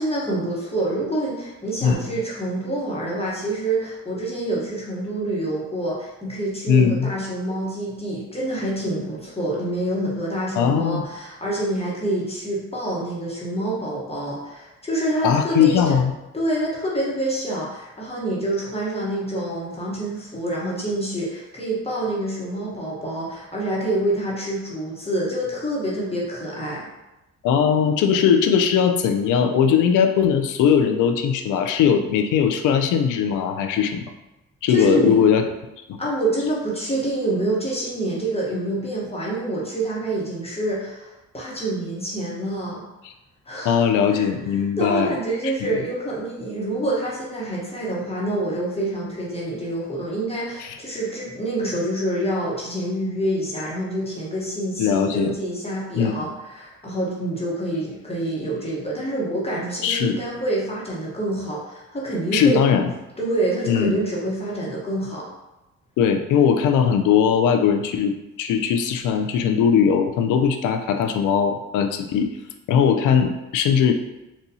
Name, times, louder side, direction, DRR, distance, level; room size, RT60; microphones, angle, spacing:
voice 1, 0.0-16.0 16.3-26.9 34.7-35.2 36.0-42.9 43.5-43.8 44.1-44.3 44.8-62.6 63.2-65.3, right 1 dB, 20° left, -5 dB, 1.0 m, -27 dB
voice 2, 6.7-7.1 10.5-11.0 15.2-16.1 27.4-34.0 34.6-35.4 43.6-45.1 50.6-50.7 54.8-55.3 55.9-56.1 59.8-60.2 62.3-62.9 63.7-64.0 66.0-72.4 72.7-73.9, left 7 dB, 85° left, 6 dB, 0.5 m, -19 dB
4.2 x 2.3 x 2.7 m, 0.98 s
cardioid pair, 90°, 30 cm